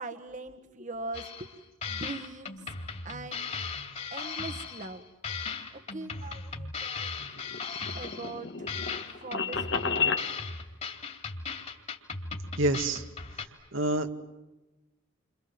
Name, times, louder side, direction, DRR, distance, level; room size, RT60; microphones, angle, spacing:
voice 1, 0.0-1.5 1.9-2.8 3.0-3.5 4.1-5.0 5.7-7.1 8.0-8.8 9.2-10.2, right 2 dB, 40° right, 6 dB, 1.4 m, -41 dB
sound 1, 1.1-1.6 1.8-5.0 5.2-8.4 8.7-13.4, left 4 dB, 35° left, 3.0 m, -37 dB
sound 2, 7.2-10.3, left 5 dB, 60° left, 1.8 m, -31 dB
voice 2, 12.6-13.0 13.7-14.1, right 2 dB, 85° right, 6 dB, 2.1 m, -27 dB
29.5 x 26.5 x 7.6 m, 1.0 s
head